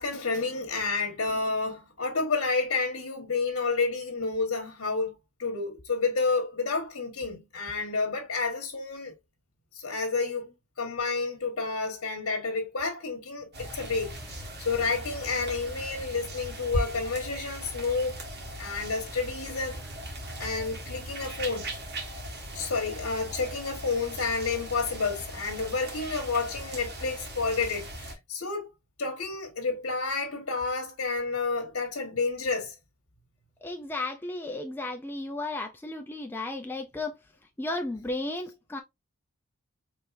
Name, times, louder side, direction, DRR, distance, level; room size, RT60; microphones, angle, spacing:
voice 1, 0.0-9.1 9.7-14.1 14.6-18.2 18.6-19.8 20.4-21.7 22.5-28.7 29.0-32.7, left 4 dB, 70° left, 1.4 m, -30 dB
sound 1, 13.5-28.1, right 1 dB, 50° right, 1.8 m, -38 dB
voice 2, 33.6-37.2 37.6-38.8, left 2 dB, 10° left, 0.4 m, -34 dB
4.6 x 3.3 x 2.5 m
head